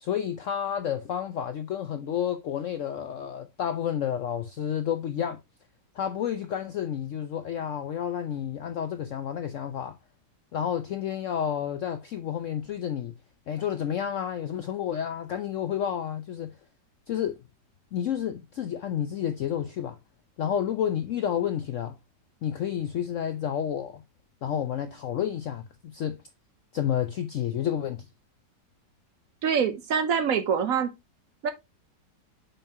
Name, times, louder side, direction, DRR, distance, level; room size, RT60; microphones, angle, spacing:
voice 1, 0.0-5.4 5.9-9.9 10.5-13.2 13.5-16.5 17.1-17.4 17.9-20.0 20.4-21.9 22.4-24.0 24.4-26.2 26.7-28.1, left 9 dB, 75° left, 0.7 m, -30 dB
voice 2, 29.4-30.9 31.4-31.5, right 7 dB, 60° right, 1.0 m, -25 dB
7.0 x 5.6 x 2.8 m
omnidirectional pair, 1.9 m